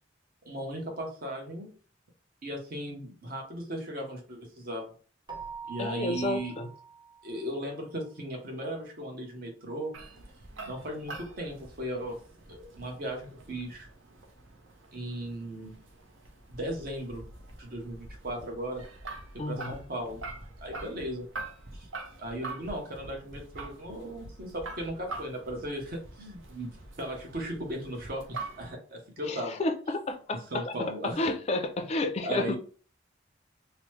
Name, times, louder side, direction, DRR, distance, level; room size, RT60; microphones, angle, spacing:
voice 1, 0.4-1.7 2.4-4.9 5.7-6.6 7.2-9.9 10.7-12.2 12.5-13.9 14.9-15.8 16.5-17.2 17.6-18.8 19.5-20.2 20.6-21.3 21.7-21.9 22.2-26.7 27.0-29.6 30.5-31.2 32.2-32.6, right 1 dB, 50° right, 1 dB, 0.9 m, -37 dB
Keyboard (musical), 5.3-7.7, right 5 dB, 20° right, 0.6 m, -44 dB
voice 2, 5.8-6.7 19.4-19.8 29.3-32.6, left 2 dB, 35° left, 7 dB, 0.4 m, -31 dB
Phantom Railings walking alone, 9.9-28.7, right 3 dB, 75° right, 0.6 m, -45 dB
3.0 x 2.0 x 3.1 m, 0.40 s
head